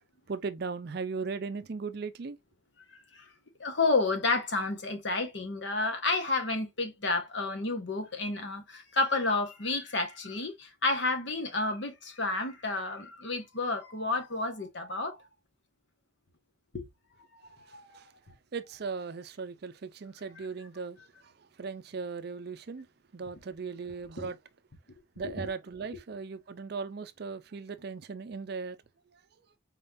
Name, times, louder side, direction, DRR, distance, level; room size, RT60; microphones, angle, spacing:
voice 1, 0.3-2.4 18.5-21.0 21.6-22.9 23.1-24.4 25.2-28.8, right 4 dB, 50° right, 0.4 m, -37 dB
voice 2, 3.6-15.2 16.7-16.8 17.8-18.0 20.4-20.5 24.2-24.3 25.2-25.5, left 3 dB, 60° left, 1.1 m, -30 dB
4.3 x 3.7 x 2.6 m
head